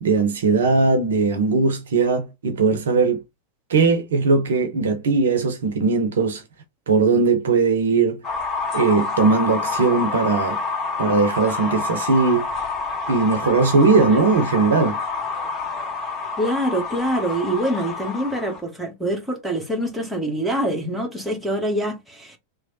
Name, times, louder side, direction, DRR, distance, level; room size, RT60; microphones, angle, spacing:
voice 1, 0.0-3.2 3.7-6.4 6.9-8.2 8.7-10.6 11.0-12.5 13.1-15.0, right 4 dB, 65° right, 0.6 m, -19 dB
sound 1, 8.2-18.6, left 4 dB, 25° left, 0.8 m, -28 dB
voice 2, 16.4-22.4, right 1 dB, 5° right, 1.1 m, -25 dB
3.0 x 2.0 x 2.7 m
figure-of-eight pair, 90°, 0 cm